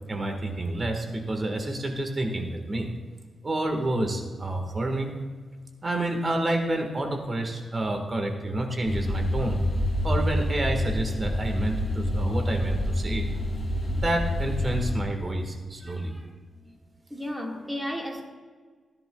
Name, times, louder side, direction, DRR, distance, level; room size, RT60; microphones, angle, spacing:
voice 1, 0.1-2.9 3.4-5.1 5.8-9.6 10.0-13.3 13.8-16.1, right 1 dB, 30° right, 4 dB, 1.5 m, -29 dB
sound 1, 8.9-15.0, left 1 dB, 25° left, 3.2 m, -27 dB
voice 2, 15.8-16.8 17.1-18.2, equal, 5° right, 0 dB, 1.7 m, -35 dB
17.5 x 10.5 x 2.3 m, 1.5 s
wide cardioid pair, 115°, 0 cm